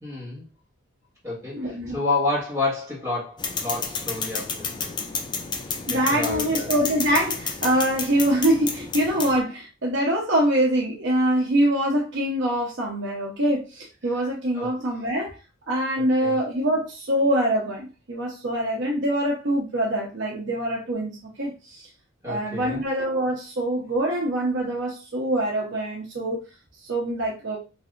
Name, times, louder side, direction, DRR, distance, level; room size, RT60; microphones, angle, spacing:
voice 1, 0.0-0.5 1.2-5.1 5.9-6.7 14.5-14.7 15.9-16.4 22.2-22.8, left 2 dB, 15° right, 1.6 m, -30 dB
voice 2, 1.5-2.0 5.9-15.3 15.7-21.9 22.2-26.4 26.8-27.6, right 1 dB, 60° right, 0.7 m, -24 dB
sound 1, 3.4-9.4, left 5 dB, 20° left, 0.3 m, -31 dB
3.2 x 2.7 x 2.5 m
head